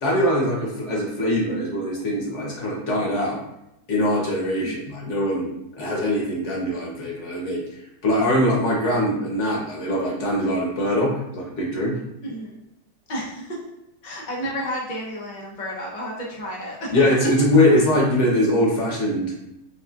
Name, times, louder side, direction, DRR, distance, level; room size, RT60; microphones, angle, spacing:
voice 1, 0.0-3.4 3.9-5.5 5.8-7.6 8.0-12.0 16.9-19.3, left 1 dB, 50° left, -3 dB, 1.0 m, -22 dB
voice 2, 12.2-12.6 13.1-13.6 14.0-16.9 17.5-17.8, equal, 70° left, -4 dB, 0.4 m, -32 dB
4.1 x 3.5 x 2.4 m, 0.84 s
omnidirectional pair, 2.1 m